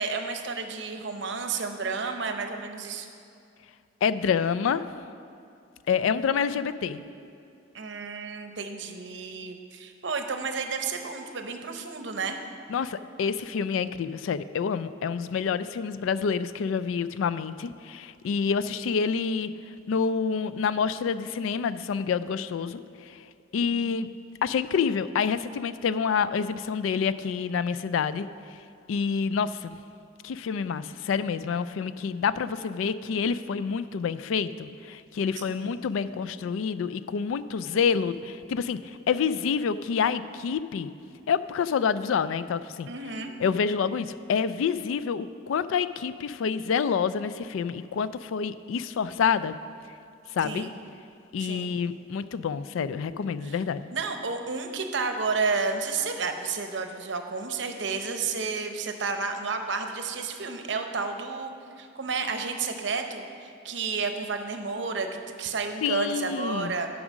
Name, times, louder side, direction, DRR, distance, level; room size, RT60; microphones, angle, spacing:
voice 1, 0.0-3.1 7.7-12.4 23.7-23.9 35.5-35.8 42.8-43.3 50.4-50.7 51.4-51.7 53.4-53.5 53.9-61.5 61.8-65.1 65.4-66.9, right 4 dB, 60° right, 6 dB, 0.7 m, -31 dB
voice 2, 4.0-4.8 5.9-7.0 12.7-19.5 19.9-23.2 23.5-24.1 24.4-28.3 28.9-29.8 30.2-40.9 41.3-42.9 43.4-49.6 50.3-50.7 51.3-53.9 65.8-66.7, left 6 dB, 80° left, 15 dB, 0.3 m, -28 dB
10.0 x 4.9 x 6.2 m, 2.5 s
head